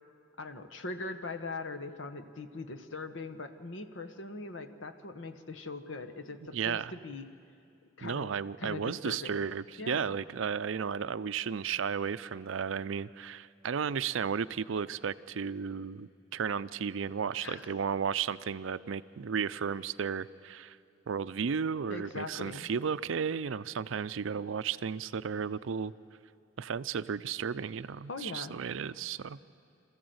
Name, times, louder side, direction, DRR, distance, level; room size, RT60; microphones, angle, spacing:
voice 1, 0.4-7.3 8.0-9.4 9.8-10.1 17.4-17.7 21.9-22.7 28.1-28.6, left 3 dB, 70° left, 8 dB, 1.1 m, -41 dB
voice 2, 6.5-6.9 8.0-20.8 21.1-25.9 26.6-29.4, right 6 dB, 70° right, 15 dB, 0.5 m, -34 dB
26.5 x 14.5 x 7.9 m, 2.6 s
head